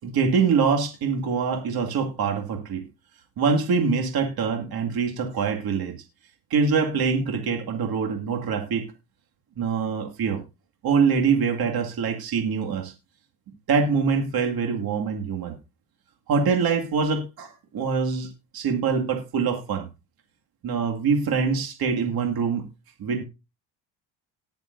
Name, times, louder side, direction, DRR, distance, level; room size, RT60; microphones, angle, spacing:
voice 1, 0.0-2.8 3.4-6.0 6.5-8.9 9.6-10.4 10.8-12.9 13.7-15.6 16.3-19.9 20.6-22.6 23.0-23.2, right 5 dB, 65° right, 3 dB, 2.2 m, -24 dB
19.0 x 7.0 x 2.6 m, 0.26 s
cardioid pair, 90°, 40 cm